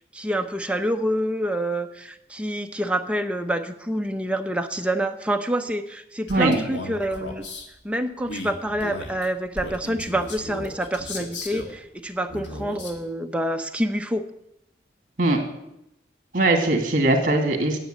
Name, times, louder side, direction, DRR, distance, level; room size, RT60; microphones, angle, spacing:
voice 1, 0.1-7.5 7.8-14.3, right 1 dB, 5° right, 5 dB, 0.7 m, -27 dB
Male speech man speaking, 6.3-7.7 8.2-11.8 12.3-13.0, left 1 dB, 85° left, 1.9 m, -36 dB
voice 2, 16.3-17.8, right 2 dB, 50° right, 4 dB, 2.2 m, -20 dB
10.0 x 7.0 x 8.9 m, 0.83 s
head